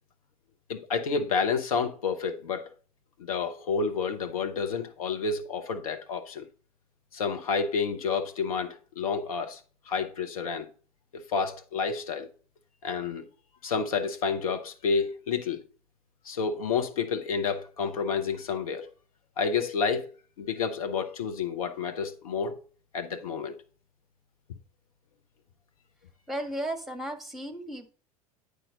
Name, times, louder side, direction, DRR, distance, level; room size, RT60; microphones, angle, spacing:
voice 1, 0.7-2.7 3.2-6.5 7.1-9.6 9.9-10.7 11.1-12.3 12.8-13.2 13.6-15.6 16.2-18.9 19.4-20.1 20.4-22.6 22.9-23.5, left 5 dB, 70° left, 1.0 m, -29 dB
voice 2, 26.3-27.9, right 1 dB, ahead, 1.4 m, -34 dB
9.2 x 5.1 x 3.7 m
figure-of-eight pair, 75°, 19 cm